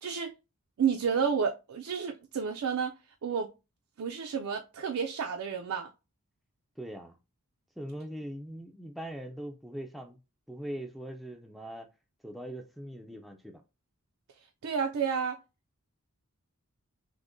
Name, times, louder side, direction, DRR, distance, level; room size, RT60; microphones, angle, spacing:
voice 1, 0.0-0.3 0.8-2.9 3.2-3.5 4.0-5.9 14.6-15.4, right 6 dB, 75° right, 0.4 m, -30 dB
voice 2, 6.8-7.2 7.8-10.2 10.5-11.9 12.2-13.6, right 1 dB, ahead, 0.3 m, -41 dB
6.2 x 2.1 x 2.5 m
head